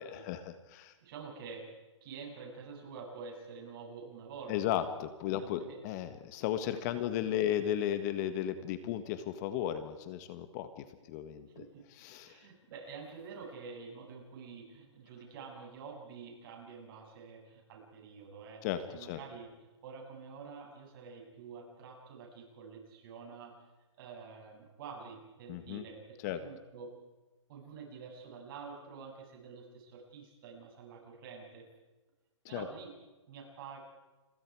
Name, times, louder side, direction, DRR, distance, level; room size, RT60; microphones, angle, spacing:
voice 1, 0.0-0.9 4.5-11.6 12.0-12.4 18.6-19.2 25.5-25.8 26.2-26.4 32.5-32.6, left 11 dB, 35° left, 11 dB, 1.6 m, -35 dB
voice 2, 1.0-1.7 2.0-4.7 5.4-5.8 6.9-7.7 11.5-11.8 12.2-19.5 19.8-23.5 24.0-26.9 27.5-31.6 32.5-32.9 33.3-33.8, right 5 dB, 45° right, 0 dB, 8.0 m, -48 dB
29.5 x 23.0 x 4.9 m, 1.2 s
hypercardioid pair, 150°, 16 cm